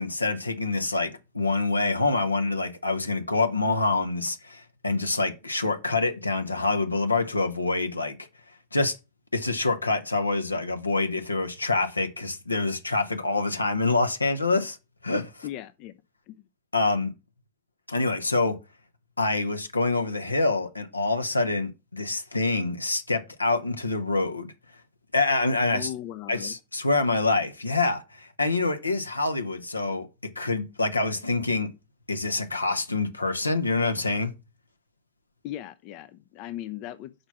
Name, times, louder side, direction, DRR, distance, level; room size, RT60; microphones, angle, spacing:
voice 1, 0.0-8.2 8.7-9.0 9.3-14.8 15.0-15.5 16.7-17.1 17.9-18.6 19.2-24.5 25.1-25.9 26.3-30.1 30.4-31.7 32.1-34.3, left 3 dB, 80° left, 1.0 m, -26 dB
voice 2, 15.4-15.9 16.3-16.4 25.7-26.5 35.4-37.1, left 13 dB, 40° left, 0.5 m, -37 dB
6.6 x 4.7 x 5.8 m
figure-of-eight pair, 90°, 0 cm